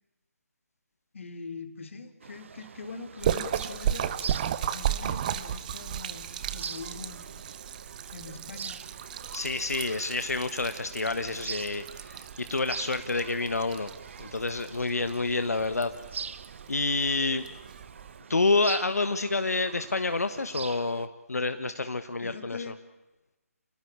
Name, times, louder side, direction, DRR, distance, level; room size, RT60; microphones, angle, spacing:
voice 1, 1.1-4.1 4.7-7.3 8.1-8.8 22.2-22.8, left 4 dB, 55° left, 8 dB, 3.1 m, -42 dB
sound 1, 2.2-21.1, right 6 dB, 50° right, 1.2 m, -44 dB
Splash splatter, 3.2-18.2, right 10 dB, 30° right, 1.2 m, -35 dB
voice 2, 9.3-13.9 14.2-15.9 16.7-17.5 18.3-22.6, left 3 dB, 75° left, 9 dB, 1.5 m, -28 dB
28.5 x 19.0 x 8.9 m, 1.1 s
figure-of-eight pair, 150°, 8 cm